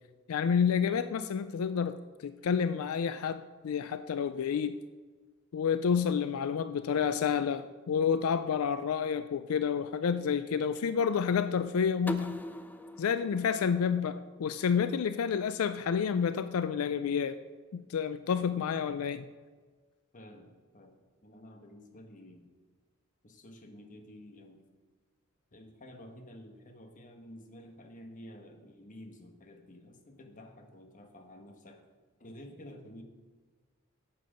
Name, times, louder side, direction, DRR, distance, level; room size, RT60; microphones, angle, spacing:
voice 1, 0.3-2.0 2.2-4.8 5.5-12.4 13.0-17.4 17.7-19.2, left 7 dB, 85° left, 12 dB, 0.4 m, -29 dB
sound 1, 12.1-14.9, equal, 10° left, 0.4 m, -42 dB
voice 2, 20.1-22.5 23.2-24.6 25.5-31.8 32.2-33.0, left 1 dB, 40° left, 4 dB, 1.2 m, -51 dB
8.8 x 7.6 x 5.1 m, 1.4 s
head